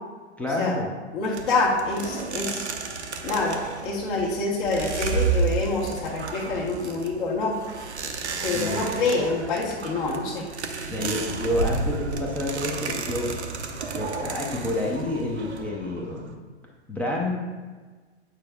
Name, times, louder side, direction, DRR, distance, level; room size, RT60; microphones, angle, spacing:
voice 1, 0.4-0.9 8.5-8.8 10.9-13.3 13.9-16.4 16.9-17.4, left 1 dB, 5° left, -3 dB, 0.4 m, -29 dB
voice 2, 1.1-2.6 3.2-7.5 8.4-10.5, left 3 dB, 50° left, -5 dB, 1.2 m, -26 dB
sound 1, 1.3-16.3, right 4 dB, 80° right, 0.7 m, -32 dB
8.9 x 4.8 x 2.2 m, 1.4 s
figure-of-eight pair, 105°, 33 cm